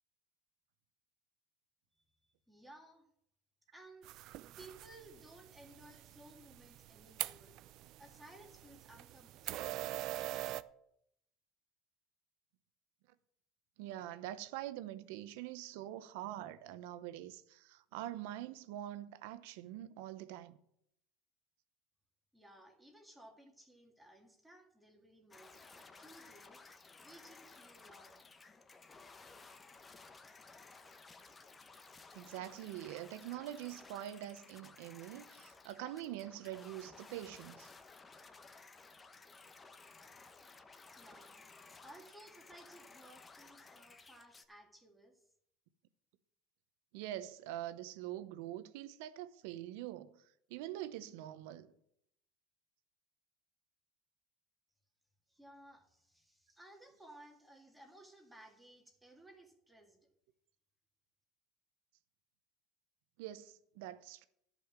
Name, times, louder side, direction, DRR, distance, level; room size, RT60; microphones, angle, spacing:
voice 1, 2.5-3.1 3.7-4.1 4.6-7.5 8.0-9.8 22.3-28.2 41.0-45.2 55.3-60.1, right 1 dB, 5° right, 2.0 m, -58 dB
sound 1, 4.0-10.6, right 16 dB, 55° right, 0.5 m, -44 dB
voice 2, 13.8-20.6 32.1-37.7 46.9-50.2 50.5-51.7 63.2-64.3, right 13 dB, 80° right, 0.8 m, -44 dB
sound 2, 25.3-44.5, left 4 dB, 20° left, 0.9 m, -57 dB
11.5 x 5.5 x 7.5 m
supercardioid pair, 125°, 0 cm